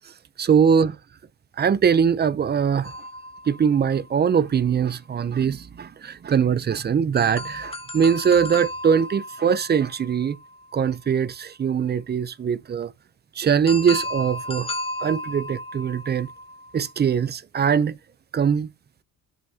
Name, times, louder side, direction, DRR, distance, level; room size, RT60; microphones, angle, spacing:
voice 1, 0.4-1.0 1.6-2.9 3.5-10.4 10.7-12.9 13.4-14.7 15.0-16.3 16.7-18.0 18.3-18.7, right 7 dB, 30° right, 0.5 m, -22 dB
sound 1, 2.8-4.6 7.2-11.1 13.7-17.1, left 1 dB, 15° left, 1.1 m, -35 dB
9.3 x 7.9 x 2.8 m
cardioid pair, 105°, 34 cm